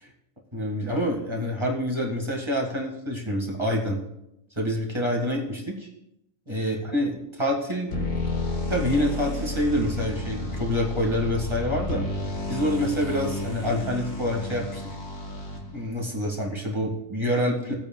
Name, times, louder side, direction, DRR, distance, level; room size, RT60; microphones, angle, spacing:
voice 1, 0.5-4.0 4.6-5.9 6.5-8.1 8.7-12.0 12.5-15.0 15.7-17.8, equal, 20° right, -2 dB, 1.9 m, -27 dB
sound 1, 7.9-15.9, left 2 dB, 50° left, 1.9 m, -31 dB
18.5 x 8.5 x 2.3 m, 0.84 s
omnidirectional pair, 1.5 m